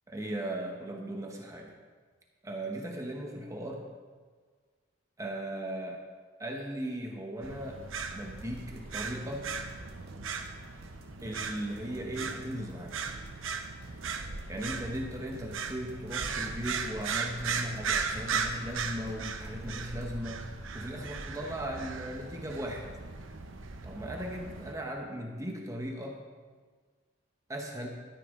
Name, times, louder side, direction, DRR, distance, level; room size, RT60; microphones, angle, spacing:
voice 1, 0.1-1.7 2.4-3.8 5.2-6.0 6.4-7.8 8.1-9.5 11.2-13.1 14.5-20.5 20.7-22.8 23.8-26.2 27.5-27.9, right 1 dB, 15° right, 1 dB, 1.1 m, -37 dB
sound 1, 7.4-24.7, right 5 dB, 90° right, 0.9 m, -37 dB
sound 2, 8.2-20.4, equal, 55° right, 1.7 m, -57 dB
13.0 x 10.0 x 3.8 m, 1.5 s
head